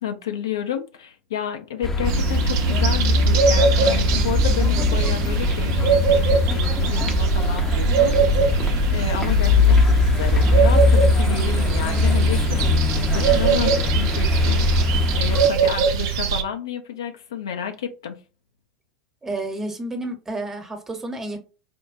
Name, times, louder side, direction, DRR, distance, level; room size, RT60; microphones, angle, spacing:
voice 1, 0.0-8.2 8.5-18.2, left 8 dB, 75° left, 0.5 m, -31 dB
sound 1, 1.8-15.5, left 3 dB, 20° left, 0.6 m, -21 dB
sound 2, 2.0-16.4, right 6 dB, 60° right, 0.5 m, -22 dB
voice 2, 19.2-21.4, right 2 dB, 15° right, 0.9 m, -30 dB
4.3 x 2.1 x 2.5 m
figure-of-eight pair, 80°, 2 cm